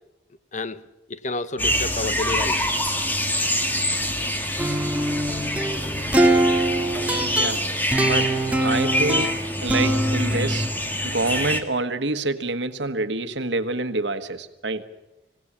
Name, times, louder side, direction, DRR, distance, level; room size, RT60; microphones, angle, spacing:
voice 1, 0.5-0.8 1.1-2.7 5.3-5.4, left 3 dB, 40° left, 0.9 m, -30 dB
sound 1, 1.6-11.6, left 1 dB, 10° left, 1.8 m, -26 dB
sound 2, 4.6-10.7, right 1 dB, 10° right, 1.7 m, -23 dB
voice 2, 7.2-7.7 8.0-8.3 8.6-10.7 11.0-14.8, right 2 dB, 80° right, 1.5 m, -27 dB
26.5 x 17.5 x 7.4 m
head